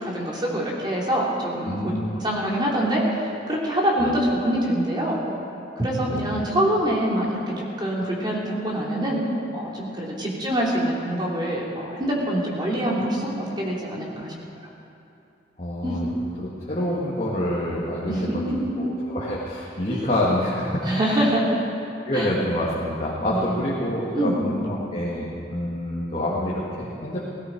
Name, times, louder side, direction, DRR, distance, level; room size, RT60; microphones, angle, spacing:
voice 1, 0.0-5.2 5.8-9.2 9.5-14.3 15.8-16.0 18.1-18.9 19.9-20.0 20.8-21.6 22.1-22.3 23.3-23.8 24.1-24.3, right 1 dB, 25° right, -4 dB, 2.9 m, -25 dB
voice 2, 1.7-2.2 4.0-4.1 6.1-6.4 15.6-16.1 16.4-18.4 18.8-20.9 22.1-27.3, left 1 dB, 35° left, -6 dB, 1.9 m, -27 dB
17.0 x 16.0 x 4.6 m, 2.7 s
head